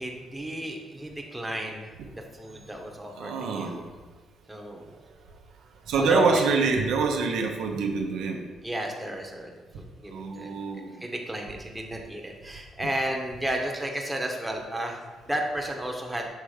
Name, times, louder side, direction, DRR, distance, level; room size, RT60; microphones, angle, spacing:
voice 1, 0.0-3.8 4.5-5.0 6.0-6.4 8.6-10.6 11.0-16.3, equal, 10° right, 1 dB, 1.0 m, -33 dB
voice 2, 3.1-3.9 5.9-8.5 10.1-11.1, right 4 dB, 85° right, 2 dB, 0.7 m, -26 dB
6.5 x 3.3 x 4.9 m, 1.3 s
cardioid pair, 90°, 0 cm